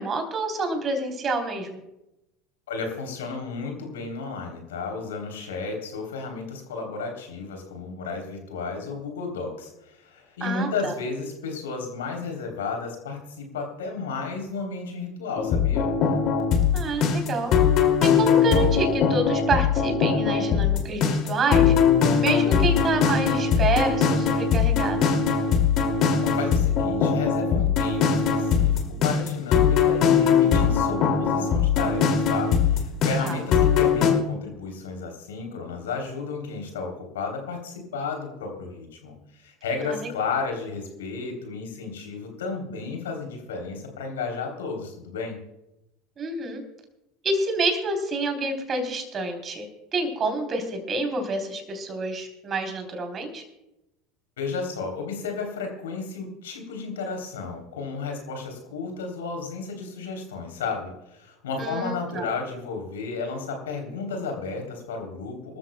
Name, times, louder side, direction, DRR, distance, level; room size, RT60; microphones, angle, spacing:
voice 1, 0.0-1.8 10.4-10.9 16.7-17.5 18.0-21.7 22.2-25.0 33.2-33.4 39.8-40.1 46.2-46.6 47.2-49.7 49.9-53.4 61.6-62.2, right 2 dB, 35° right, 4 dB, 3.5 m, -28 dB
voice 2, 2.7-15.9 26.2-45.4 54.4-65.6, left 4 dB, 75° left, 3 dB, 3.3 m, -33 dB
sound 1, 15.4-34.1, left 6 dB, 50° left, 2.5 m, -21 dB
25.0 x 13.5 x 2.3 m, 0.90 s
figure-of-eight pair, 75°, 0 cm